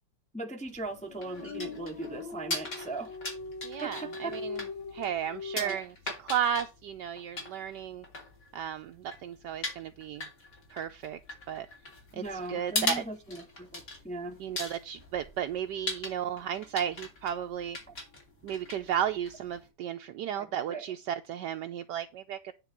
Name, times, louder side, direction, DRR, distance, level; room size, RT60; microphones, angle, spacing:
voice 1, 0.3-3.1 3.8-4.4 5.6-5.8 12.1-14.4 20.3-20.8, right 2 dB, 5° left, 0.5 m, -39 dB
sound 1, 0.7-19.7, left 2 dB, 45° left, 3.3 m, -40 dB
sound 2, 0.8-5.6, left 4 dB, 80° left, 1.7 m, -41 dB
voice 2, 3.6-4.6 4.9-5.9 6.2-8.1 8.5-10.3 10.7-11.2 11.5-11.7 12.1-12.2 12.5-13.0 14.4-17.8 18.4-22.5, right 9 dB, 75° right, 1.1 m, -34 dB
9.7 x 3.6 x 7.1 m
omnidirectional pair, 2.1 m